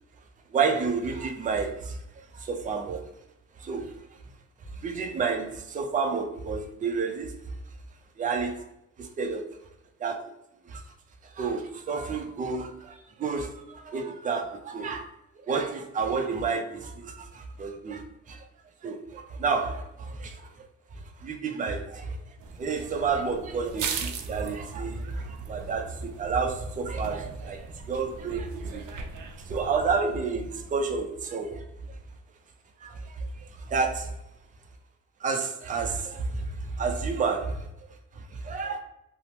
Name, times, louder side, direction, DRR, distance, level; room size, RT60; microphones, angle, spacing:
voice 1, 0.5-2.0 2.3-3.0 3.6-3.9 4.8-7.3 8.2-8.6 9.0-9.4 10.0-10.3 10.6-10.8 11.4-15.0 15.5-18.4 18.8-20.4 21.2-22.2 22.6-28.8 29.5-31.6 32.8-34.1 35.2-37.9 38.2-38.8, right 5 dB, 25° right, 4 dB, 0.4 m, -30 dB
sound 1, 22.4-30.0, right 6 dB, 85° right, 0.5 m, -39 dB
2.8 x 2.0 x 2.9 m, 0.84 s
cardioid pair, 90°, 30 cm